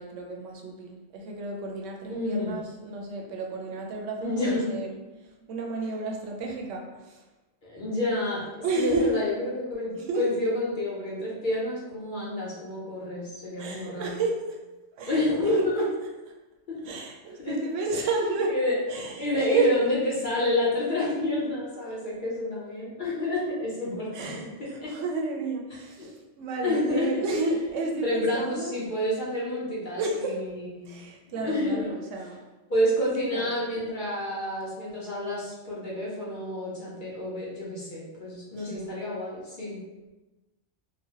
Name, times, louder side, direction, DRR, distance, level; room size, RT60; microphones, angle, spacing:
voice 1, 0.0-4.9 5.5-7.2 8.6-9.2 9.9-10.3 13.6-14.5 15.0-15.7 16.8-18.5 18.9-19.7 24.1-28.7 30.0-30.4 30.9-32.4 33.3-33.5 38.5-38.9, right 3 dB, 85° right, 0 dB, 0.9 m, -31 dB
voice 2, 2.1-2.5 4.2-4.7 7.6-8.4 8.8-14.2 15.1-15.8 17.4-17.6 18.5-18.7 19.2-24.9 26.0-26.1 26.6-27.1 28.0-31.0 31.3-32.0 32.7-39.8, left 1 dB, 50° left, -6 dB, 0.8 m, -29 dB
3.0 x 2.1 x 2.8 m, 1.1 s
omnidirectional pair, 1.2 m